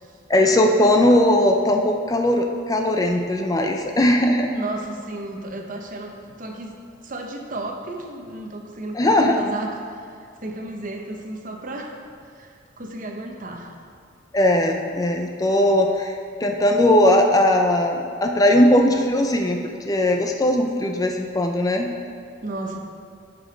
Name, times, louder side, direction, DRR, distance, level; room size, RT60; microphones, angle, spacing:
voice 1, 0.3-4.5 8.9-9.4 14.3-21.9, left 1 dB, 20° left, 4 dB, 0.4 m, -19 dB
voice 2, 4.5-6.7 7.0-12.0 12.2-13.7 22.4-22.8, right 2 dB, 45° right, 2 dB, 0.9 m, -33 dB
8.0 x 6.1 x 5.1 m, 2.3 s
head